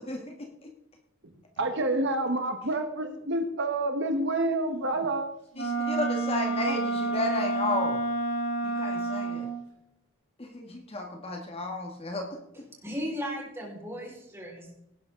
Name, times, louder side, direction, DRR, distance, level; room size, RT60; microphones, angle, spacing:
voice 1, 1.6-5.3 6.7-6.8, right 2 dB, 55° right, 6 dB, 1.2 m, -28 dB
Wind instrument woodwind instrument, 5.5-9.6, right 3 dB, 60° left, 4.3 m, -29 dB
voice 2, 5.6-8.0 8.6-9.5 10.5-12.3, left 2 dB, 30° left, 2 dB, 1.5 m, -32 dB
voice 3, 12.8-14.7, equal, 10° right, -2 dB, 4.7 m, -36 dB
18.0 x 10.0 x 3.8 m, 0.84 s
head